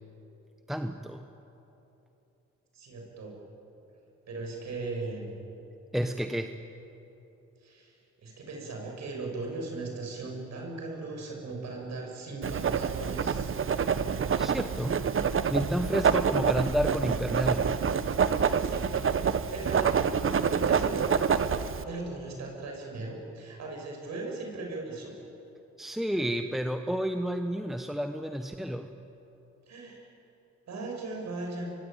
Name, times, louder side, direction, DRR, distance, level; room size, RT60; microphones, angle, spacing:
voice 1, 0.7-1.3 5.9-6.5 14.4-15.1 15.5-17.7 25.8-28.9, equal, ahead, 6 dB, 1.2 m, -30 dB
voice 2, 2.7-3.3 4.3-5.3 7.6-7.9 8.2-13.5 18.6-19.9 20.5-21.0 21.5-25.1 29.7-30.1 30.7-31.7, right 3 dB, 60° right, 0 dB, 7.5 m, -38 dB
Writing, 12.4-21.8, right 6 dB, 45° right, 1.3 m, -27 dB
24.0 x 23.5 x 9.2 m, 2.9 s
cardioid pair, 90°, 30 cm